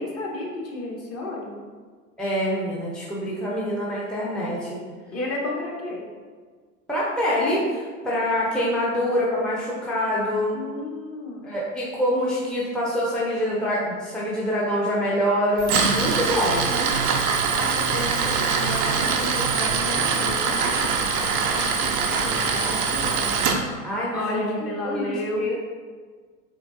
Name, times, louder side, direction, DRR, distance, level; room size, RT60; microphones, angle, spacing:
voice 1, 0.0-1.5 5.1-6.0 10.5-11.5 16.2-23.3 24.1-25.5, left 2 dB, 35° left, -2 dB, 0.9 m, -33 dB
voice 2, 2.2-4.8 6.9-10.6 11.4-16.7 23.8-25.5, equal, ahead, -6 dB, 0.6 m, -25 dB
Tools, 15.6-23.6, right 5 dB, 80° right, 0.6 m, -23 dB
3.7 x 3.2 x 2.5 m, 1.5 s
hypercardioid pair, 85°, 43 cm